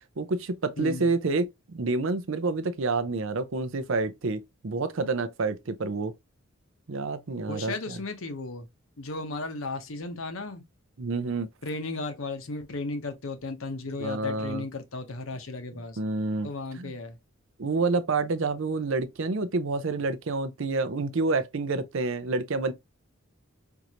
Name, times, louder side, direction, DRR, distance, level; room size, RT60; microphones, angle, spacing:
voice 1, 0.2-6.1 6.9-8.0 11.0-11.5 14.0-14.6 16.0-16.5 16.8-17.0 17.6-22.7, right 3 dB, 65° right, 0.6 m, -28 dB
voice 2, 0.8-1.1 7.5-8.7 9.0-10.6 11.6-16.0 16.4-17.2, left 3 dB, 70° left, 0.9 m, -35 dB
4.6 x 2.6 x 2.8 m
head